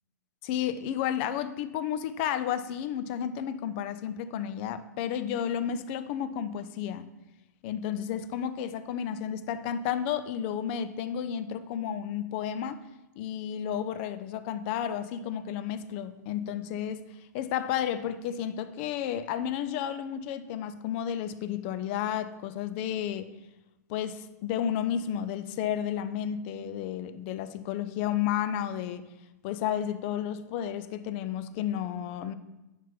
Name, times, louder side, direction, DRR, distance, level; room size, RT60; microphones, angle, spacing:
voice 1, 0.4-7.1 7.6-12.8 13.2-17.0 17.3-23.3 23.9-29.0 29.4-32.3, left 9 dB, 40° left, 0.5 m, -32 dB
7.3 x 5.4 x 4.4 m
figure-of-eight pair, 105°, 9 cm